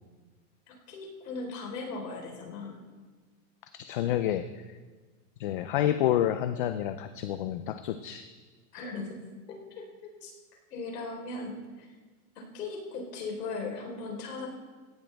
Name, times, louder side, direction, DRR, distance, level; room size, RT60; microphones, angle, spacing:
voice 1, 0.7-2.8 8.7-9.2 9.5-10.3 10.7-11.9 12.4-14.5, left 3 dB, 85° left, 0 dB, 4.1 m, -38 dB
voice 2, 3.7-4.6 5.4-8.3, left 11 dB, 35° left, 10 dB, 0.4 m, -29 dB
17.0 x 12.5 x 3.4 m, 1.4 s
supercardioid pair, 155°, 47 cm